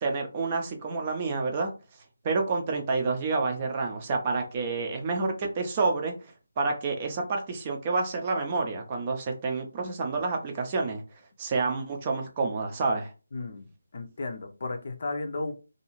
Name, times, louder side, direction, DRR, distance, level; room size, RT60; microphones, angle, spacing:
voice 1, 0.0-1.7 2.2-6.1 6.6-11.0 11.4-13.1, right 3 dB, 25° right, 3 dB, 0.5 m, -28 dB
voice 2, 13.3-15.5, left 3 dB, 50° left, 5 dB, 0.5 m, -34 dB
2.6 x 2.3 x 3.0 m, 0.32 s
figure-of-eight pair, 155°, 0 cm